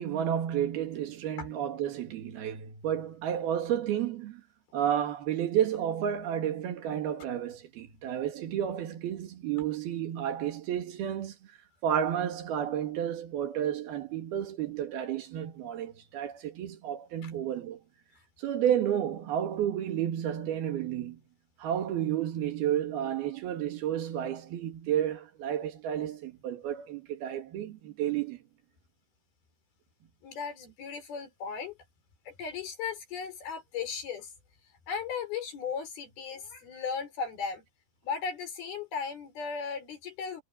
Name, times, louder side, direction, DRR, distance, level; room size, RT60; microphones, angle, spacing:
voice 1, 0.0-4.4 4.7-11.4 11.8-17.8 18.4-21.2 21.6-28.4, right 10 dB, 85° right, 3.9 m, -31 dB
voice 2, 30.2-31.8 32.3-34.3 34.9-37.6 38.0-40.4, left 6 dB, 80° left, 6.9 m, -36 dB
omnidirectional pair, 4.3 m